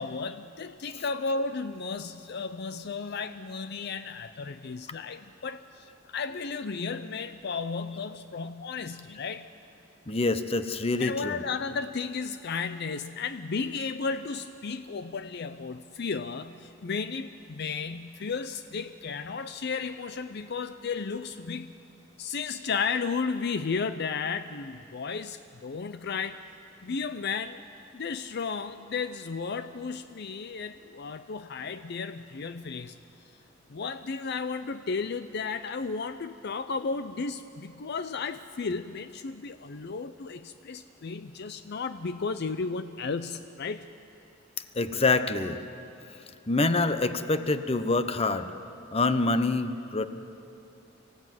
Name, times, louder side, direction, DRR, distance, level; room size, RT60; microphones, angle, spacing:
voice 1, 0.0-9.5 11.0-21.7 22.2-26.4 26.8-27.6 27.9-33.0 33.7-43.9, left 5 dB, 60° left, 11 dB, 0.5 m, -34 dB
voice 2, 10.1-11.4 44.7-45.6 46.5-48.5 48.9-50.1, left 3 dB, 30° left, 11 dB, 0.9 m, -26 dB
25.0 x 16.0 x 9.2 m, 2.7 s
head